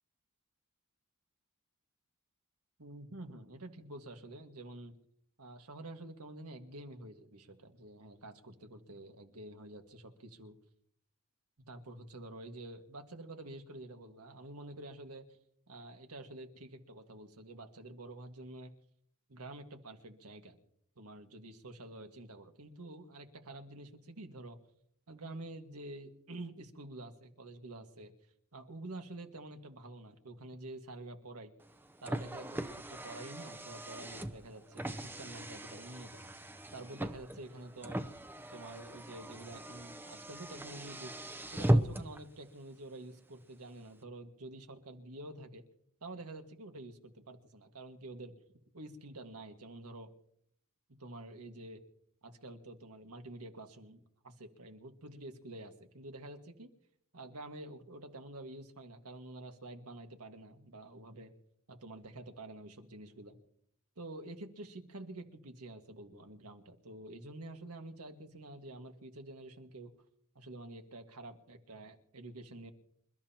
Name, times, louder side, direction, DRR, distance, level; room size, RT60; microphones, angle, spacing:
voice 1, 2.8-4.9 5.4-10.5 11.7-15.3 15.7-18.7 19.3-20.6 21.0-24.6 25.1-28.1 28.5-31.5 32.0-36.3 36.7-38.0 38.5-41.1 41.5-45.6 46.0-48.4 48.7-50.1 51.0-51.8 52.2-56.7 57.1-61.3 61.7-63.3 64.0-69.9 70.4-72.7, right 2 dB, 80° right, 5 dB, 1.8 m, -48 dB
Car, 31.6-42.2, right 1 dB, 10° right, 0.7 m, -37 dB
27.5 x 13.5 x 2.9 m, 0.71 s
head